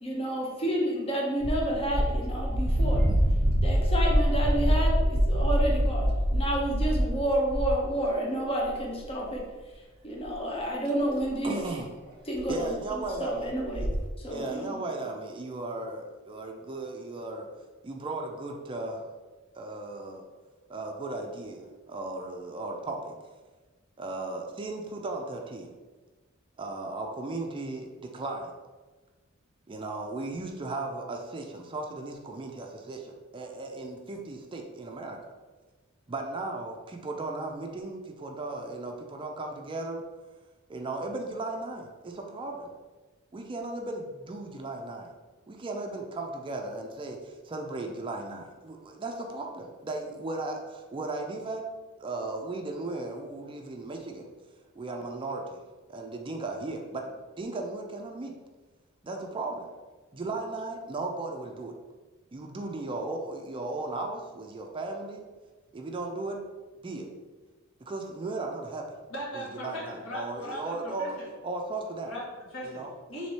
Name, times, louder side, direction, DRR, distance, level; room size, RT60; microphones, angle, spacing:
voice 1, 0.0-3.0 3.6-9.4 10.0-11.5 12.3-13.9 14.2-14.7, right 1 dB, 30° left, -2 dB, 0.7 m, -30 dB
sound 1, 1.4-7.9 8.6-9.1 9.3-9.4 10.2-10.3 11.3-11.4 11.6-11.7 12.4-12.6 12.9-13.0 13.1-13.2 13.6-14.0, equal, 50° right, 0.8 m, -25 dB
voice 2, 11.4-11.9 12.5-13.5 13.8-13.9 14.3-17.5 17.8-19.1 19.6-20.2 20.7-23.1 24.0-25.7 26.6-28.5 29.7-35.2 36.1-40.0 40.7-42.7 43.3-45.1 45.5-51.7 52.0-54.3 54.8-55.6 55.9-58.3 59.0-59.7 60.1-61.7 62.3-65.3 65.7-66.4 66.8-67.0 67.8-68.9 69.3-71.2 71.4-72.1 72.6-72.9, right 2 dB, 25° right, 2 dB, 0.4 m, -36 dB
voice 3, 69.1-71.3 72.0-73.3, equal, 70° left, -4 dB, 1.3 m, -38 dB
3.3 x 3.2 x 4.1 m, 1.3 s
head